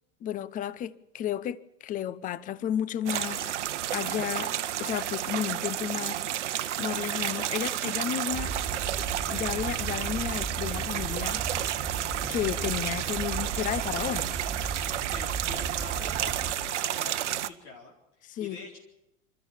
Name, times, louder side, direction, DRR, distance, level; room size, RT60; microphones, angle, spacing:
voice 1, 0.2-3.5 3.9-4.5 4.8-8.5 9.3-11.7 12.3-14.4 18.3-18.6, left 10 dB, 20° left, 0.7 m, -33 dB
sound 1, 3.1-17.5, right 11 dB, 65° right, 1.0 m, -31 dB
sound 2, 7.1-16.0, right 1 dB, ahead, 3.8 m, -52 dB
sound 3, 8.3-16.6, right 5 dB, 20° right, 2.1 m, -36 dB
voice 2, 15.1-18.8, left 3 dB, 60° left, 4.2 m, -46 dB
28.0 x 13.5 x 7.3 m
figure-of-eight pair, 90°, 39 cm